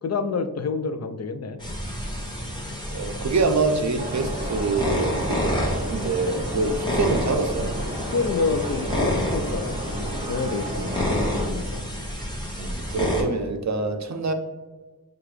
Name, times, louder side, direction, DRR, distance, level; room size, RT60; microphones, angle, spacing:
voice 1, 0.0-1.6 6.6-6.7 8.1-11.9, left 4 dB, 45° left, 9 dB, 0.4 m, -28 dB
sound 1, 1.6-13.2, equal, 10° left, 1.2 m, -29 dB
voice 2, 2.9-7.7 12.5-14.3, right 3 dB, 50° right, 7 dB, 0.5 m, -25 dB
sound 2, 4.0-11.5, right 1 dB, 15° right, 1.1 m, -33 dB
6.6 x 2.4 x 3.1 m, 1.3 s
wide cardioid pair, 65°, 36 cm